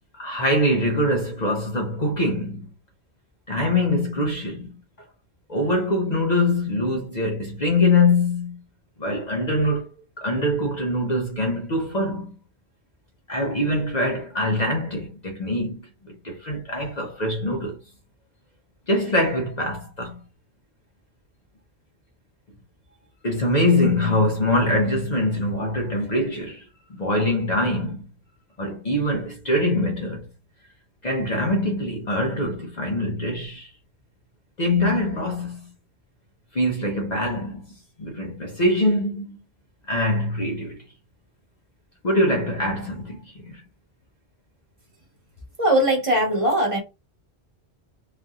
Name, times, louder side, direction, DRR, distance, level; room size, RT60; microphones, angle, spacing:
voice 1, 0.1-2.7 3.5-4.7 5.5-8.6 9.0-9.9 10.2-12.3 13.3-17.8 18.9-20.2 23.2-26.6 27.0-28.1 28.6-30.2 31.0-33.7 34.6-35.7 36.5-37.6 38.0-39.4 39.9-40.8 42.0-43.6, left 1 dB, 45° left, 0.8 m, -23 dB
voice 2, 45.6-46.8, right 1 dB, 30° right, 1.1 m, -20 dB
3.3 x 2.6 x 2.3 m
omnidirectional pair, 1.1 m